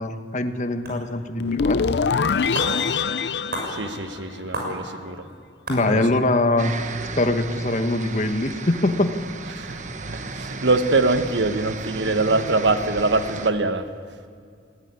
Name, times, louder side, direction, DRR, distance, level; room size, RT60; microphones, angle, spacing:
voice 1, 0.0-1.8 5.7-6.7 7.2-9.1, left 2 dB, 45° left, 7 dB, 1.3 m, -22 dB
sound 1, 0.8-1.0 1.8-1.9 2.2-2.3 2.5-2.8 3.5-3.7 4.5-4.7 5.3-5.4 5.7-5.8, right 1 dB, 60° right, 6.0 m, -30 dB
sound 2, 1.4-4.7, left 5 dB, 70° left, 0.5 m, -24 dB
voice 2, 3.7-5.2 5.9-6.0 9.6-9.8 10.1-13.9, right 3 dB, 85° right, 9 dB, 1.3 m, -23 dB
sound 3, 6.6-13.5, right 4 dB, 45° right, 1.1 m, -35 dB
20.5 x 16.0 x 9.7 m, 2.2 s
head